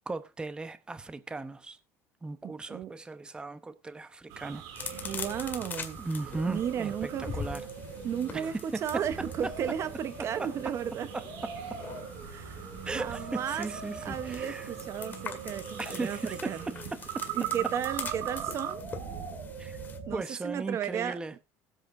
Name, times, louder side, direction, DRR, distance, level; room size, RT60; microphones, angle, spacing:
voice 1, 0.1-1.8 2.2-4.6 6.0-7.6 8.3-8.5 8.7-9.0 9.4-9.5 10.4-10.7 11.1-11.3 11.7-11.8 12.8-14.7 15.8-17.3 19.6-19.8 20.1-21.3, right 3 dB, 15° right, 0.9 m, -37 dB
voice 2, 2.4-2.9 5.0-6.0 6.5-7.4 8.0-11.1 12.2-13.7 14.0-16.6 17.3-18.9 20.1-21.4, right 9 dB, 45° right, 0.9 m, -34 dB
sound 1, 4.3-18.7, right 13 dB, 85° right, 2.7 m, -42 dB
sound 2, 4.8-20.0, left 6 dB, 30° left, 2.0 m, -44 dB
sound 3, 4.8-20.2, right 5 dB, 70° right, 4.5 m, -43 dB
20.5 x 8.0 x 2.6 m
cardioid pair, 125°, 7 cm